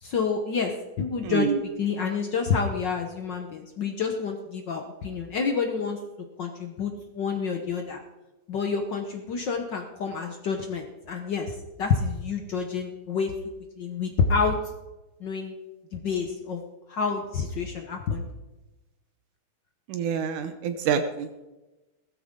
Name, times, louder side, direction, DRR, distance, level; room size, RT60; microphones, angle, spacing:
voice 1, 0.0-1.5 1.8-6.0 6.4-8.0 8.5-13.3 13.8-14.6 15.2-15.5 15.9-16.6 16.9-18.3, left 5 dB, 85° left, 4 dB, 1.0 m, -28 dB
voice 2, 1.2-1.6 19.9-21.3, right 7 dB, 80° right, 8 dB, 2.3 m, -27 dB
16.0 x 13.5 x 3.7 m, 1.1 s
omnidirectional pair, 3.6 m